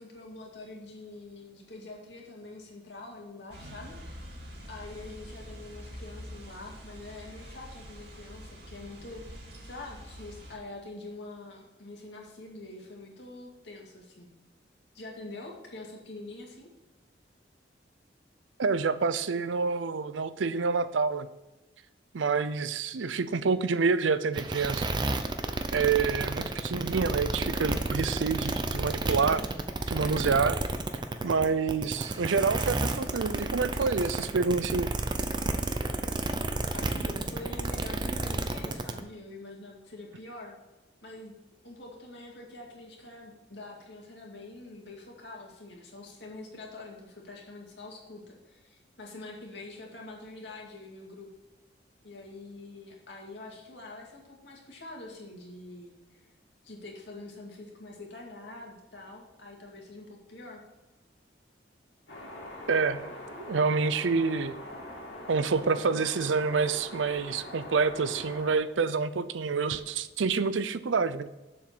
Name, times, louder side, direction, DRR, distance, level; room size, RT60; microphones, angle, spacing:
voice 1, 0.0-4.0 4.7-14.3 14.9-16.7 36.6-40.6 41.0-41.3 41.6-51.3 52.0-56.3 56.6-60.6, left 2 dB, 70° left, -1 dB, 2.2 m, -45 dB
sound 1, 3.5-10.6, equal, 65° right, 2.5 m, -45 dB
voice 2, 18.6-21.3 22.1-24.9 25.7-29.5 29.9-30.6 31.2-34.9 62.7-64.6 65.3-71.3, right 5 dB, 90° right, 14 dB, 0.5 m, -27 dB
sound 2, 24.3-39.0, right 2 dB, 25° right, 0.6 m, -31 dB
sound 3, 62.1-68.6, left 1 dB, 90° left, 2.8 m, -43 dB
7.3 x 7.3 x 4.6 m, 1.1 s
head